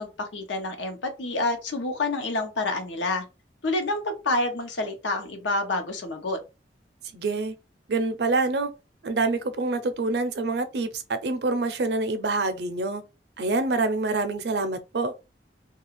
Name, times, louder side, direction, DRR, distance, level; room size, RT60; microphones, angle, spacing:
voice 1, 0.0-3.2 3.6-6.4, left 2 dB, 85° left, 0.7 m, -28 dB
voice 2, 7.1-7.5 7.9-8.7 9.0-13.0 13.4-15.1, right 3 dB, 65° right, 0.5 m, -26 dB
2.4 x 2.3 x 3.0 m
head